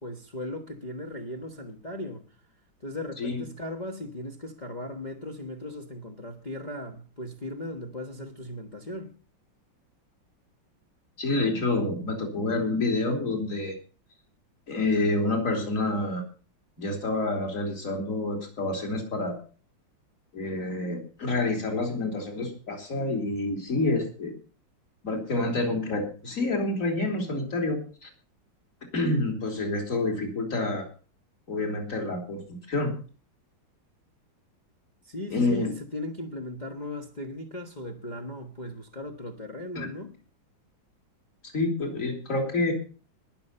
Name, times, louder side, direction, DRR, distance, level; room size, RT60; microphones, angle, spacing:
voice 1, 0.0-2.2 2.8-9.1 35.0-40.1, left 1 dB, 25° left, 1.3 m, -37 dB
voice 2, 11.2-13.8 14.7-16.2 16.8-19.4 20.3-24.3 25.0-28.1 28.9-30.8 31.5-32.9 35.3-35.7 39.8-39.9 41.5-42.7, left 2 dB, 40° left, 3.7 m, -28 dB
20.5 x 6.9 x 5.5 m
omnidirectional pair, 2.1 m